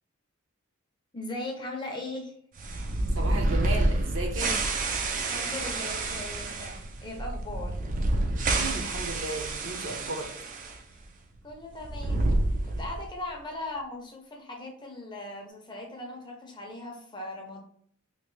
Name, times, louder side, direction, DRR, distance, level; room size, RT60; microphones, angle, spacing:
voice 1, 1.1-2.4 5.2-7.8 10.9-11.1 11.4-12.3 12.8-17.6, left 2 dB, 20° left, 1 dB, 0.6 m, -39 dB
sound 1, 2.6-10.8 11.0-11.1 11.8-13.1, right 2 dB, 40° right, 0.4 m, -29 dB
voice 2, 3.1-4.7 8.5-10.3, right 2 dB, 65° right, 2 dB, 0.8 m, -35 dB
3.1 x 2.6 x 3.1 m, 0.63 s
head